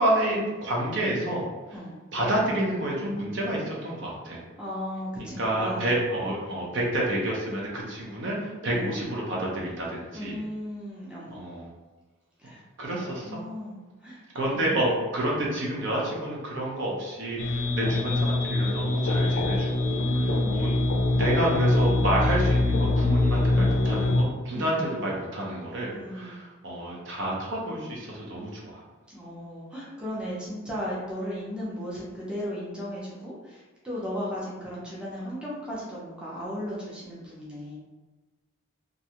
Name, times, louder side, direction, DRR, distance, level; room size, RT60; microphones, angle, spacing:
voice 1, 0.0-1.4 2.1-4.4 5.4-10.4 11.3-11.7 12.4-12.5 12.8-13.4 14.3-20.0 20.5-20.7 21.1-28.8, right 1 dB, 60° right, -3 dB, 0.6 m, -29 dB
voice 2, 4.6-6.3 8.6-8.9 10.1-11.4 12.4-12.6 12.9-14.2 14.5-14.9 15.3-15.6 17.8-18.1 19.9-20.8 24.5-24.9 25.9-26.4 29.1-37.8, equal, 5° right, -7 dB, 0.5 m, -36 dB
sound 1, 17.4-24.2, left 2 dB, 55° left, 0.3 m, -24 dB
2.4 x 2.2 x 2.8 m, 1.2 s
head